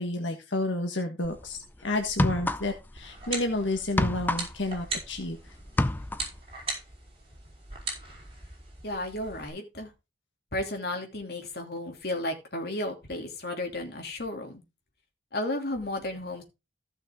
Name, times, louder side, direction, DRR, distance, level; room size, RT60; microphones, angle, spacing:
voice 1, 0.0-5.4, left 2 dB, 85° left, 4 dB, 1.5 m, -30 dB
sound 1, 1.2-1.4 2.0-3.0 3.2-5.3 5.6-6.4, left 1 dB, 10° left, 0.5 m, -28 dB
sound 2, 3.0-9.5, right 3 dB, 30° right, 4.8 m, -39 dB
voice 2, 8.8-9.9 10.5-14.6 15.3-16.4, left 1 dB, 55° left, 3 dB, 2.9 m, -33 dB
15.0 x 6.3 x 3.8 m, 0.26 s
head